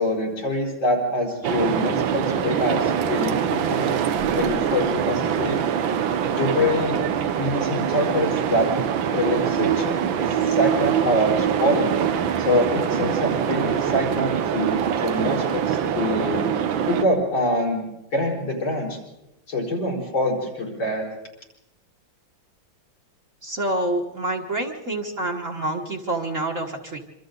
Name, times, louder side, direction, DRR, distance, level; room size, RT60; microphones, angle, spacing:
voice 1, 0.0-3.9 4.3-5.6 6.3-7.0 7.4-8.7 9.1-10.0 10.3-11.9 12.4-16.5 16.9-17.9 18.1-19.0 19.5-21.0, left 1 dB, 75° left, 1 dB, 5.8 m, -25 dB
sound 1, 1.4-17.0, right 8 dB, 80° right, 1.7 m, -24 dB
voice 2, 23.4-27.0, right 1 dB, 40° right, 0 dB, 1.9 m, -27 dB
26.0 x 25.0 x 4.0 m, 0.92 s
omnidirectional pair, 2.1 m